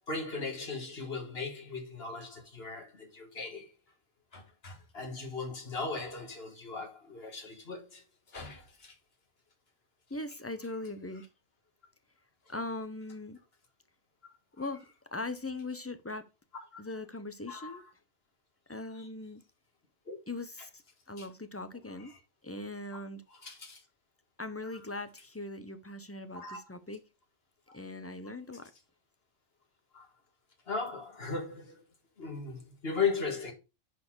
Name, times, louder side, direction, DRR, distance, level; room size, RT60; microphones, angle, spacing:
voice 1, 0.1-3.7 4.3-8.0 8.3-8.9 16.7-16.8 17.5-17.8 19.0-19.1 20.1-20.2 21.2-21.3 23.3-23.8 26.3-26.6 27.7-27.8 29.9-30.1 30.7-31.8 32.2-33.5, left 4 dB, 50° left, 2.0 m, -37 dB
voice 2, 10.1-11.2 12.5-13.4 14.5-14.8 15.1-16.3 16.8-17.8 18.7-19.4 20.3-22.1 22.4-23.2 24.4-27.0 27.7-28.7, left 2 dB, 20° left, 0.4 m, -40 dB
10.0 x 4.2 x 4.6 m
omnidirectional pair, 1.4 m